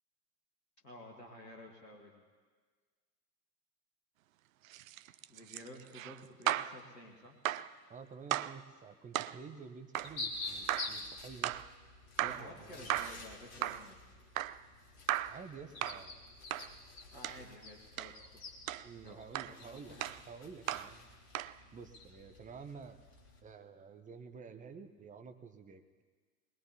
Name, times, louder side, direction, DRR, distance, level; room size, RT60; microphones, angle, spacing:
voice 1, 0.8-2.2 5.3-7.4 12.2-14.0 17.1-18.4 19.0-20.0, left 1 dB, 85° left, 0 dB, 1.7 m, -52 dB
sound 1, 4.6-6.8 7.4-7.7 8.3-8.6 9.1-9.4 9.9-10.2 10.7-11.0 11.4-11.7 12.2-12.5 12.9-13.2 13.6-13.9 14.4-14.6 15.1-15.4 15.8-16.0 16.5-16.7 17.2-17.4 18.0-18.2 18.7-18.9 19.3-19.6 20.0-20.2 20.7-20.9 21.3-21.6, right 13 dB, 55° right, 0.6 m, -36 dB
voice 2, 7.9-11.6 12.2-13.1 15.3-16.2 17.1-17.5 18.8-20.0 20.3-21.1 21.7-23.0 23.4-26.0, right 5 dB, 15° right, 7 dB, 0.9 m, -50 dB
sound 2, 9.9-23.4, left 3 dB, 55° left, 3.6 m, -48 dB
21.5 x 21.0 x 2.8 m, 1.5 s
figure-of-eight pair, 85°, 48 cm